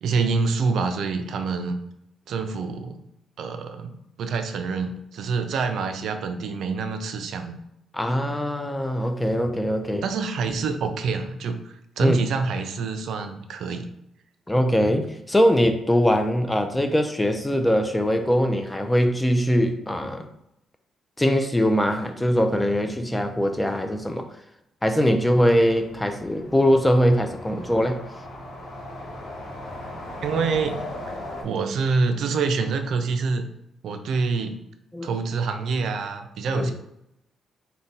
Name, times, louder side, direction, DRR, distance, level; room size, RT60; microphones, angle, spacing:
voice 1, 0.0-1.8 2.3-3.0 3.4-7.6 10.0-13.9 30.2-30.8 31.4-33.4 33.8-34.6 35.0-36.7, right 4 dB, 70° right, 7 dB, 0.4 m, -26 dB
voice 2, 7.9-10.1 12.0-12.2 14.5-20.3 21.2-24.3 24.8-28.0 34.9-35.1 36.5-36.7, equal, 10° left, 6 dB, 0.4 m, -22 dB
sound 1, 25.2-31.4, left 1 dB, 75° left, 1.1 m, -38 dB
4.0 x 2.2 x 4.0 m, 0.81 s
cardioid pair, 115°, 0 cm